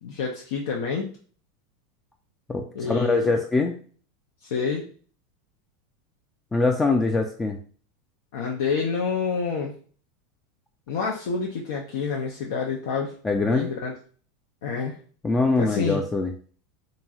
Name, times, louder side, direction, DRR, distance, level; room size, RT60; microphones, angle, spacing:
voice 1, 0.0-1.1 2.7-3.4 4.4-4.8 8.3-9.7 10.9-13.1 13.5-13.9 14.6-14.9 15.6-16.0, left 5 dB, 75° left, -1 dB, 0.6 m, -28 dB
voice 2, 2.5-3.8 6.5-7.6 13.2-13.7 15.2-16.3, left 3 dB, 15° left, 3 dB, 0.3 m, -23 dB
3.0 x 2.6 x 2.3 m, 0.42 s
supercardioid pair, 125°, 0 cm